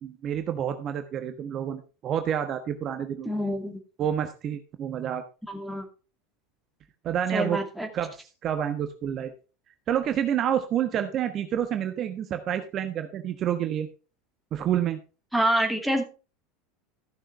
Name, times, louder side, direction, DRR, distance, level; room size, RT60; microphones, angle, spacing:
voice 1, 0.0-3.3 4.0-5.2 7.0-7.6 7.9-8.1 8.4-9.3 9.9-13.9 14.5-15.0, right 9 dB, 40° right, 8 dB, 1.2 m, -28 dB
voice 2, 3.3-3.8 5.4-5.9 7.3-7.9 15.3-16.0, right 1 dB, ahead, 3 dB, 2.5 m, -26 dB
14.5 x 6.3 x 4.6 m, 0.34 s
hypercardioid pair, 85°, 0 cm